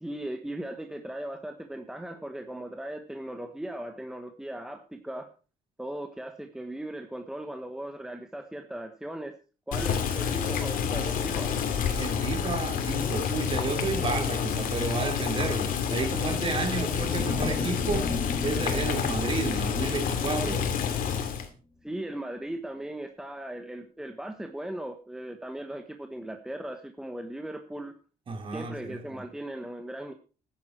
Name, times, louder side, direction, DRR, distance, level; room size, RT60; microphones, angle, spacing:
voice 1, 0.0-5.3 5.8-9.3 9.7-11.5 21.8-27.9 28.5-30.1, right 1 dB, 5° right, 1.3 m, -38 dB
Boiling, 9.7-21.5, left 7 dB, 70° left, 2.7 m, -29 dB
voice 2, 12.0-18.1 18.4-20.8 28.3-29.2, right 4 dB, 35° right, 3.2 m, -32 dB
sound 1, 16.9-21.2, left 4 dB, 25° left, 1.6 m, -36 dB
14.0 x 10.5 x 4.5 m
cardioid pair, 135°, 15 cm